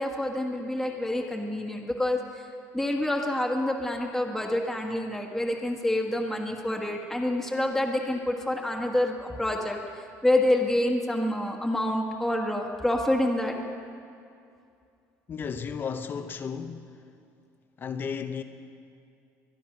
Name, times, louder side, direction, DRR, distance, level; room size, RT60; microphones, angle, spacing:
voice 1, 0.0-2.4 2.7-13.5, left 1 dB, 5° left, 1.5 m, -27 dB
voice 2, 15.3-17.0 17.8-18.4, left 6 dB, 35° left, 0.8 m, -34 dB
23.0 x 10.5 x 6.0 m
cardioid pair, 125°, 6 cm